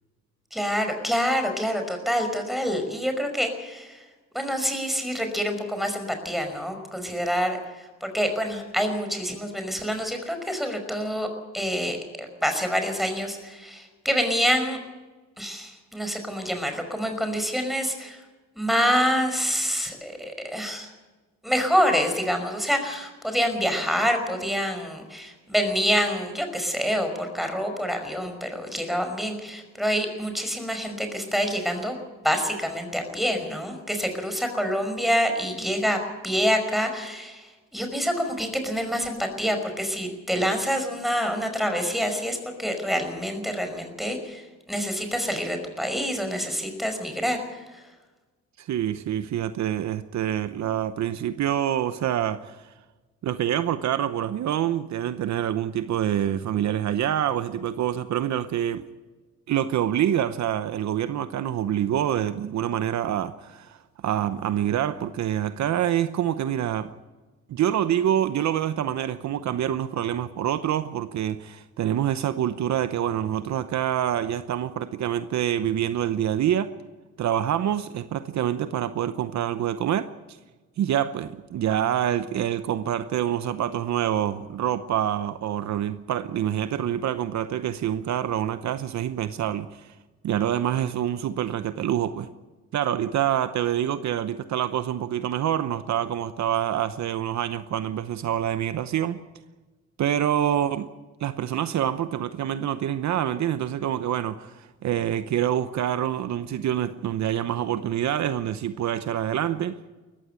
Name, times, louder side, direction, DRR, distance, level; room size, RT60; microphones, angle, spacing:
voice 1, 0.5-4.0 4.3-11.3 11.5-14.8 15.4-18.2 18.6-20.9 21.4-32.0 32.2-36.0 36.2-44.4 44.7-47.4, equal, ahead, 5.3 m, -27 dB
voice 2, 48.6-52.6 53.2-58.9 59.5-66.9 67.5-76.7 77.2-80.4 80.8-89.9 90.2-92.3 92.7-99.2 100.0-100.9 101.2-109.7, right 10 dB, 65° right, 0.9 m, -26 dB
19.5 x 15.0 x 8.9 m
cardioid pair, 90°, 30 cm